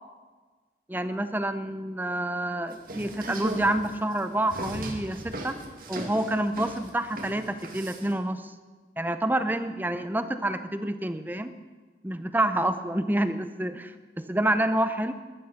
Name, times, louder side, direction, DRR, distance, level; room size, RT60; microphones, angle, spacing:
voice 1, 0.9-5.6 5.9-8.5 9.0-11.5 12.0-15.1, right 1 dB, 10° right, 10 dB, 0.6 m, -28 dB
sound 1, 2.7-8.1, right 1 dB, 55° right, 2.1 m, -37 dB
15.5 x 12.0 x 5.9 m, 1.4 s
head